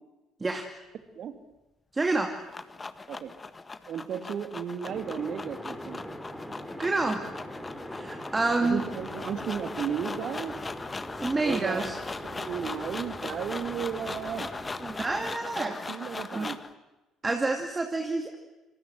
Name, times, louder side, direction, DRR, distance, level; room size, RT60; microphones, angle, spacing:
voice 1, 1.9-2.4 6.8-7.2 7.9-8.8 11.2-12.0 14.8-16.5 17.2-18.4, right 3 dB, 20° right, 4 dB, 2.6 m, -29 dB
sound 1, 2.1-16.7, left 3 dB, 20° left, 1.7 m, -39 dB
voice 2, 3.9-6.0 8.6-10.5 11.4-11.9 12.2-14.5 15.6-16.6, right 7 dB, 45° right, 8 dB, 2.8 m, -34 dB
sound 2, 4.9-15.4, equal, 5° left, 4.4 m, -41 dB
27.0 x 27.0 x 7.7 m, 1.0 s
figure-of-eight pair, 50°, 0 cm